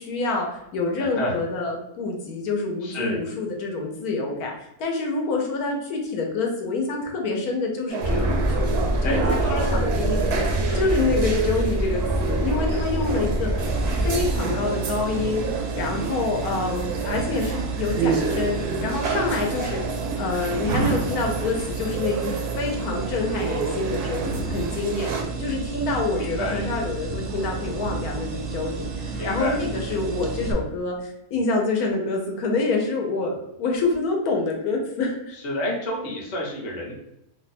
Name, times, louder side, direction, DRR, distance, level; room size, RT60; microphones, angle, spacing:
voice 1, 0.0-8.7 9.0-15.5 15.7-19.8 20.2-35.4, left 3 dB, 75° left, 1 dB, 1.1 m, -27 dB
voice 2, 1.0-1.3 2.8-3.2 9.0-9.7 10.7-10.8 26.2-26.6 29.1-29.6 35.4-36.9, left 1 dB, 35° left, -3 dB, 0.8 m, -29 dB
sound 1, 7.9-25.2, right 5 dB, 90° right, 1.2 m, -30 dB
sound 2, 8.0-14.4, right 1 dB, 5° right, 0.3 m, -25 dB
sound 3, 13.6-30.5, right 4 dB, 65° right, 0.8 m, -31 dB
2.8 x 2.2 x 4.0 m, 0.83 s
omnidirectional pair, 1.6 m